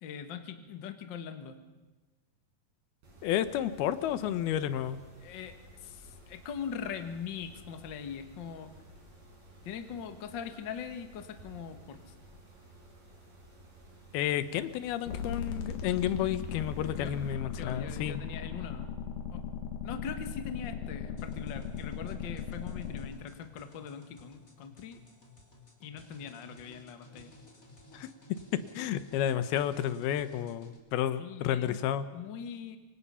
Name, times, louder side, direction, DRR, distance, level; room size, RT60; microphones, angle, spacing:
voice 1, 0.0-1.5 5.2-5.5 5.8-8.7 9.6-12.0 17.0-17.2 17.5-18.9 19.3-19.4 19.8-25.0 25.8-27.3 31.2-31.8 32.1-32.8, left 7 dB, 50° left, 7 dB, 1.3 m, -41 dB
Mechanisms, 3.0-17.3, right 1 dB, 80° right, 8.2 m, -55 dB
voice 2, 3.2-5.0 14.1-18.2 27.9-28.1 28.5-32.1, left 11 dB, 90° left, 13 dB, 2.9 m, -31 dB
sound 1, 15.1-23.1, left 7 dB, 70° left, 3.7 m, -38 dB
sound 2, 21.2-30.8, left 2 dB, 25° left, 3.1 m, -56 dB
26.5 x 24.5 x 5.7 m, 1.2 s
omnidirectional pair, 4.3 m